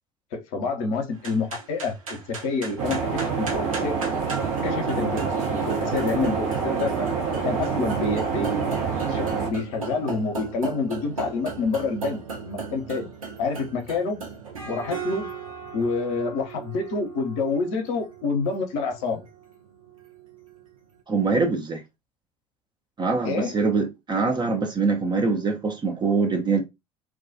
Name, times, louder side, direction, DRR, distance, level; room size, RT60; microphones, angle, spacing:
voice 1, 0.3-4.0 4.6-7.1 7.4-8.7 9.1-13.1 13.4-14.2 14.7-15.3 15.7-19.2 23.2-23.6, left 4 dB, 65° left, 0.7 m, -28 dB
sound 1, 1.1-20.7, right 5 dB, 85° right, 0.6 m, -37 dB
sound 2, 2.8-9.5, right 5 dB, 65° right, 0.9 m, -27 dB
voice 2, 21.1-21.8 23.0-26.6, right 4 dB, 25° right, 0.5 m, -23 dB
2.3 x 2.2 x 2.6 m
figure-of-eight pair, 60°, 17 cm